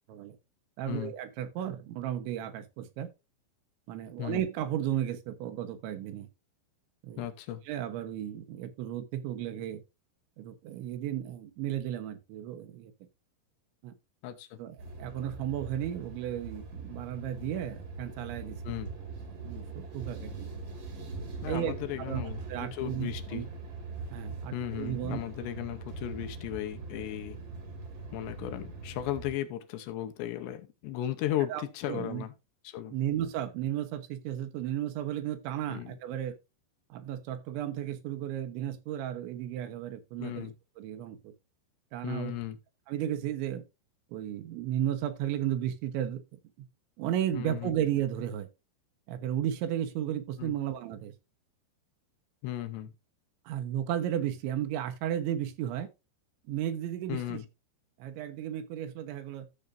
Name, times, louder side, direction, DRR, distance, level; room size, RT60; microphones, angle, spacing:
voice 1, 0.8-3.1 3.9-6.3 7.0-7.3 7.7-9.8 10.4-12.9 13.8-13.9 14.6-18.6 19.4-20.5 21.5-23.5 24.1-25.2 31.5-31.6 31.9-32.2 32.9-36.4 36.9-40.5 40.8-41.3 41.9-42.3 42.9-43.6 44.1-46.4 47.0-48.5 49.1-51.1 53.5-55.9 56.5-57.4 58.0-59.5, right 11 dB, 75° right, 3.3 m, -34 dB
voice 2, 7.2-7.6 14.2-14.6 18.6-18.9 21.4-23.4 24.5-27.4 28.1-32.3 32.6-32.9 35.7-35.9 40.2-40.5 42.0-42.6 47.3-47.7 50.4-50.6 52.4-52.9 57.1-57.5, left 12 dB, 75° left, 2.8 m, -36 dB
sound 1, 14.8-29.3, right 3 dB, 45° right, 2.1 m, -41 dB
13.5 x 6.9 x 2.6 m
omnidirectional pair, 5.5 m